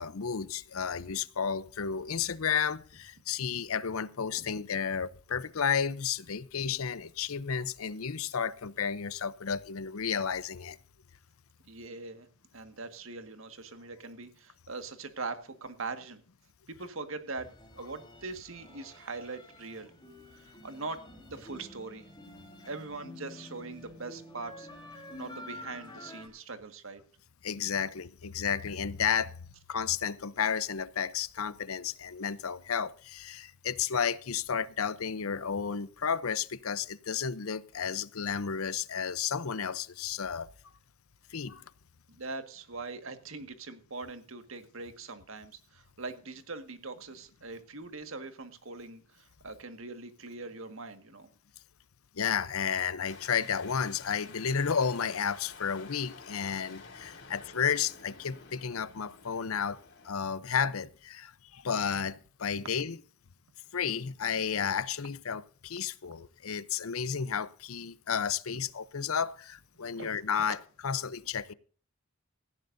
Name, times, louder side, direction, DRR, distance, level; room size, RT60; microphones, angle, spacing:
voice 1, 0.0-10.8 27.4-29.4 29.7-40.5 41.3-41.6 52.2-59.8 60.0-63.0 63.7-70.6 70.8-71.5, left 7 dB, 80° left, 0.7 m, -32 dB
voice 2, 11.7-12.3 12.5-16.2 16.7-19.9 20.3-22.1 22.6-27.0 42.1-51.3 69.9-70.1, right 3 dB, 65° right, 1.7 m, -42 dB
sound 1, 17.4-26.3, left 1 dB, 20° left, 4.0 m, -49 dB
sound 2, 53.0-60.1, left 4 dB, 55° left, 5.0 m, -51 dB
17.5 x 15.5 x 2.7 m
head